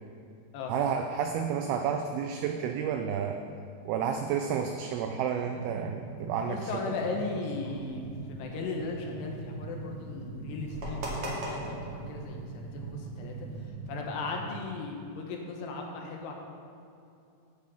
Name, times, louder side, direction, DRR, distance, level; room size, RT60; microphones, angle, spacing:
voice 1, 0.7-3.4 3.9-6.7, right 7 dB, 85° right, 6 dB, 2.2 m, -30 dB
sound 1, 5.4-14.6, right 3 dB, 70° right, 2.5 m, -41 dB
voice 2, 6.4-8.0 8.3-13.4 13.9-16.3, left 4 dB, 75° left, 1 dB, 3.1 m, -37 dB
sound 2, 7.6-13.7, right 1 dB, 45° right, 1.9 m, -42 dB
15.5 x 5.2 x 5.4 m, 2.6 s
omnidirectional pair, 5.0 m